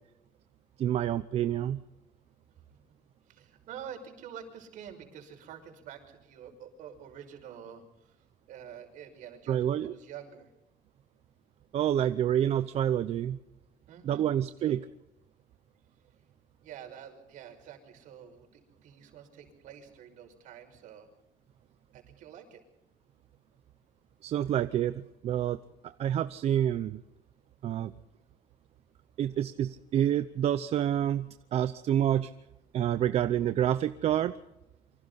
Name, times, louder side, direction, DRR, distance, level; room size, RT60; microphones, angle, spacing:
voice 1, 0.8-1.8 9.5-9.9 11.7-13.4 14.0-14.8 24.2-27.0 27.6-27.9 29.2-32.3 32.7-34.3, right 10 dB, 50° right, 11 dB, 0.8 m, -28 dB
voice 2, 3.3-8.1 8.5-10.5 13.9-14.3 14.7-14.8 16.6-21.1 21.9-22.6, right 8 dB, 70° right, 4 dB, 5.9 m, -47 dB
28.0 x 25.0 x 4.2 m, 0.90 s
cardioid pair, 165°, 14 cm